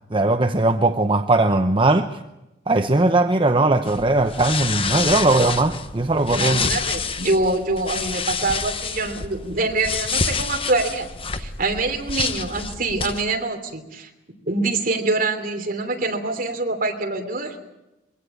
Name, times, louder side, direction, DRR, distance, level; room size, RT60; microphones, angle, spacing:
voice 1, 0.1-2.2 2.7-6.7, right 2 dB, 30° right, 0.8 m, -19 dB
sound 1, 3.9-13.2, left 5 dB, 30° left, 1.0 m, -28 dB
voice 2, 6.3-11.1 11.3-14.1 14.5-17.6, right 2 dB, 50° right, 3.1 m, -25 dB
22.5 x 17.5 x 8.6 m
head